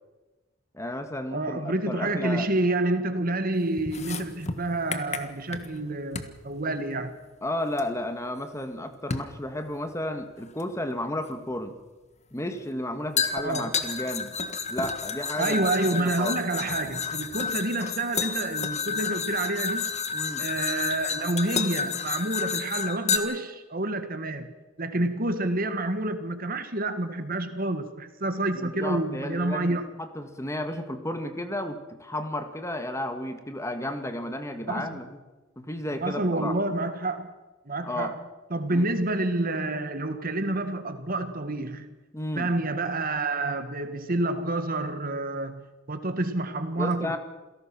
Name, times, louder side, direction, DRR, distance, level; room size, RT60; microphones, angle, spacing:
voice 1, 0.7-2.5 7.4-11.8 12.3-14.4 14.7-16.4 20.1-20.5 28.5-35.2 35.6-36.5 37.8-38.1 38.7-38.8 42.1-42.5 46.8-47.2, left 1 dB, 15° left, 1.8 m, -33 dB
voice 2, 1.3-7.2 13.3-13.8 15.4-19.9 20.4-24.5 24.8-29.8 34.7-35.0 36.0-37.3 37.7-38.2 38.5-41.9 42.4-47.2, right 2 dB, 50° right, 1.8 m, -28 dB
sound 1, 3.8-5.8 6.1-6.4 7.8-7.9 9.1-9.3 10.6-10.7 13.2-23.2, left 6 dB, 35° left, 1.6 m, -30 dB
28.0 x 17.5 x 6.2 m
head